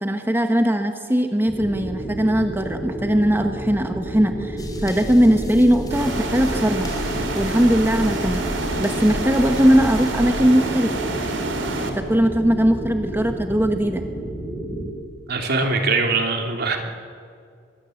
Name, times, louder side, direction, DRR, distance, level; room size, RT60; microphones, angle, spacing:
voice 1, 0.0-6.9 7.3-8.4 8.8-10.9 11.9-14.0, equal, 10° right, 6 dB, 1.1 m, -19 dB
sound 1, 1.5-14.9, right 1 dB, 5° left, 5.8 m, -31 dB
sound 2, 4.6-10.3, equal, 20° left, 3.3 m, -33 dB
sound 3, 5.9-11.9, right 2 dB, 85° right, 3.1 m, -28 dB
voice 2, 15.3-16.8, right 3 dB, 60° right, 3 dB, 2.9 m, -22 dB
23.5 x 20.0 x 7.8 m, 2.2 s
head